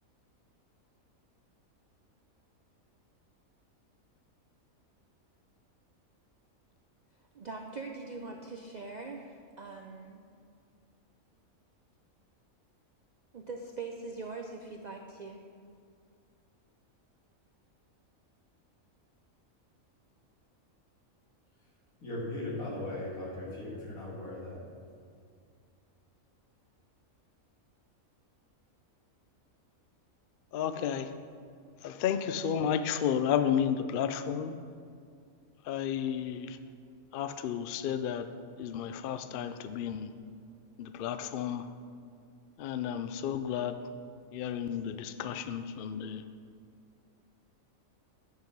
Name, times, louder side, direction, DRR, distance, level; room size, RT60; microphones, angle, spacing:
voice 1, 7.3-10.2 13.3-15.4, right 3 dB, 65° right, 2 dB, 0.4 m, -42 dB
voice 2, 22.0-24.6, left 1 dB, 90° left, -4 dB, 2.5 m, -38 dB
voice 3, 30.5-31.1 31.8-34.6 35.6-36.6 37.1-38.3 38.6-40.1 40.8-41.7 42.6-43.8 44.3-46.2, left 8 dB, 75° left, 11 dB, 0.5 m, -32 dB
9.4 x 7.0 x 4.6 m, 2.3 s
omnidirectional pair, 1.4 m